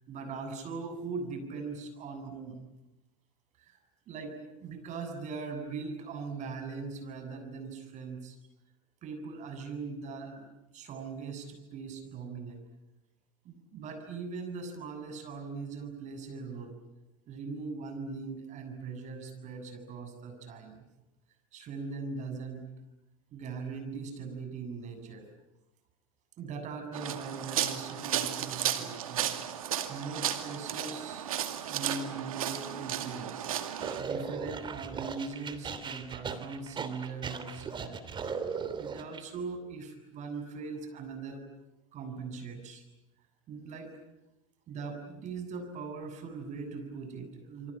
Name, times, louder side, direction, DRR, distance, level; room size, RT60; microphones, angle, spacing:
voice 1, 0.1-2.6 3.6-3.8 4.1-8.4 9.0-10.5 10.7-12.6 13.4-16.8 17.3-20.8 21.5-22.7 23.3-25.3 26.4-29.4 29.9-31.3 31.6-33.5 34.0-38.0 38.8-41.4 41.9-42.8 43.5-44.0 44.7-47.7, right 4 dB, 45° right, 7 dB, 7.4 m, -40 dB
sound 1, 26.9-34.0, right 10 dB, 85° right, 2.4 m, -34 dB
sound 2, 33.8-39.2, right 5 dB, 25° right, 3.1 m, -38 dB
28.0 x 24.5 x 8.7 m, 0.97 s
hypercardioid pair, 100°, 18 cm